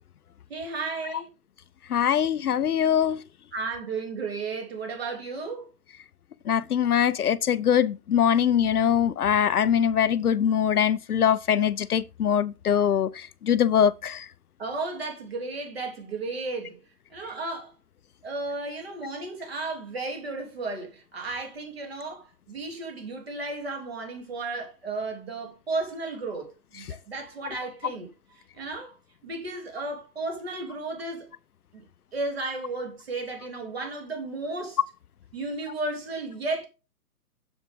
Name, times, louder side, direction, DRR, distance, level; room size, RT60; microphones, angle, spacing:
voice 1, 0.5-1.3 3.5-5.7 14.6-16.8 17.1-17.7 18.2-28.1 28.5-28.9 29.2-31.3 31.7-31.8 32.1-34.8 35.3-36.7, right 3 dB, 40° right, 2.8 m, -34 dB
voice 2, 1.9-3.2 6.5-14.3, left 9 dB, 65° left, 0.6 m, -23 dB
7.1 x 7.0 x 3.6 m
hypercardioid pair, 180°, 48 cm